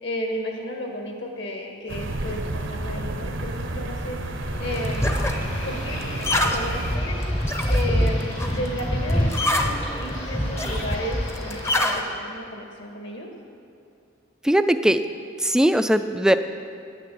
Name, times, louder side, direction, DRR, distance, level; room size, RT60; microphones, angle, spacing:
voice 1, 0.0-5.1 5.6-13.3, equal, 65° left, 1 dB, 1.8 m, -33 dB
sound 1, 1.9-7.0, right 2 dB, 75° right, 0.9 m, -31 dB
sound 2, 4.5-12.0, left 1 dB, 15° left, 0.7 m, -25 dB
sound 3, 4.6-12.0, left 1 dB, 85° left, 3.5 m, -38 dB
voice 2, 14.4-15.0 15.4-16.4, equal, 5° right, 10 dB, 0.3 m, -19 dB
9.8 x 9.2 x 7.8 m, 2.4 s
head